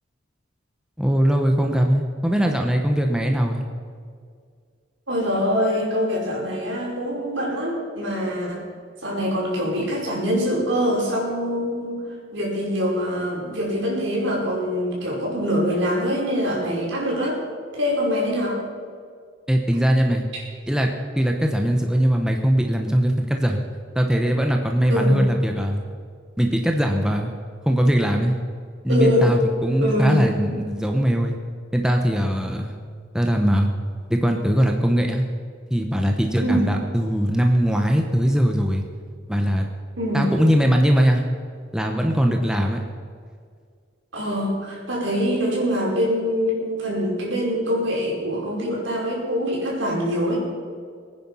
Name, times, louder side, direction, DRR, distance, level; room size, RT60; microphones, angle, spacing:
voice 1, 1.0-3.6 19.5-20.2 20.7-20.9 21.2-23.6 23.9-25.8 26.4-27.3 27.7-28.4 28.8-31.4 31.7-32.7 33.1-33.7 34.1-35.2 35.7-38.8 39.3-39.7 40.1-41.2 41.7-42.8, equal, 5° right, 2 dB, 1.0 m, -20 dB
voice 2, 5.1-8.6 9.0-12.0 12.3-17.4 17.7-18.6 20.3-20.4 24.9-25.2 28.9-29.3 29.8-30.2 36.4-36.7 40.0-40.3 44.1-50.4, equal, 70° right, -3 dB, 5.2 m, -24 dB
22.5 x 9.7 x 5.6 m, 2.1 s
head